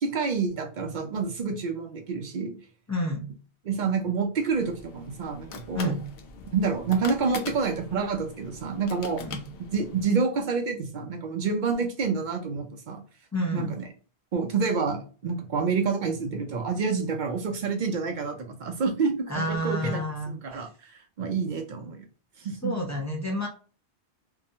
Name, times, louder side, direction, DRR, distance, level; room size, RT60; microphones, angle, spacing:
voice 1, 0.0-2.5 3.6-6.0 6.5-9.2 9.7-13.0 13.5-13.9 14.3-20.0 20.3-22.0 22.4-22.7, right 5 dB, 60° right, 4 dB, 0.5 m, -28 dB
voice 2, 2.9-3.2 5.7-6.0 9.2-9.4 13.3-13.7 19.3-20.6 22.6-23.5, left 1 dB, 25° left, 0 dB, 0.4 m, -29 dB
sound 1, 4.5-10.1, left 5 dB, 65° left, 0.7 m, -42 dB
2.7 x 2.3 x 2.6 m, 0.38 s
omnidirectional pair, 1.1 m